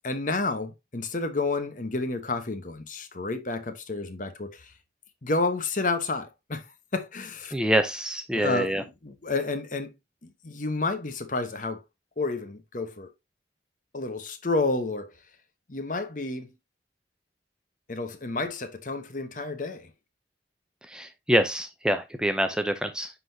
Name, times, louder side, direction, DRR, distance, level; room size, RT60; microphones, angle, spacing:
voice 1, 0.0-4.7 5.2-6.6 6.9-7.5 8.3-9.9 10.2-11.8 12.2-13.1 13.9-15.1 15.7-16.5 17.9-19.9, left 3 dB, 45° left, 1.0 m, -30 dB
voice 2, 7.5-8.8 20.9-23.1, equal, 5° right, 0.5 m, -26 dB
9.7 x 4.0 x 2.7 m
head